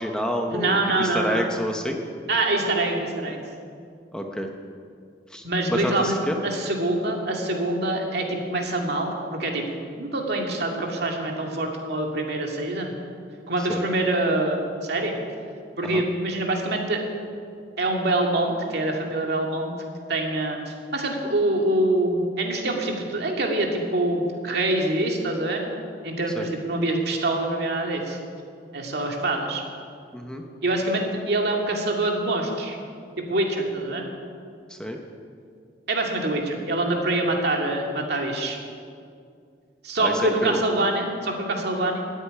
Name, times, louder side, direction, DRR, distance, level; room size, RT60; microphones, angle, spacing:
voice 1, 0.0-2.0 4.1-4.5 5.3-5.4 5.7-6.4 13.7-13.8 15.8-16.0 26.3-26.5 30.1-30.4 34.7-35.0 40.0-40.6, equal, 5° left, 2 dB, 1.0 m, -28 dB
voice 2, 0.5-1.5 2.3-3.4 5.4-9.1 9.4-9.6 10.0-12.9 13.5-15.1 15.8-17.0 17.8-19.7 20.1-25.6 26.0-28.2 28.7-29.6 30.6-32.8 33.3-34.0 35.9-38.6 39.8-42.0, right 2 dB, 60° right, 1 dB, 2.3 m, -25 dB
14.0 x 8.3 x 9.9 m, 2.3 s
head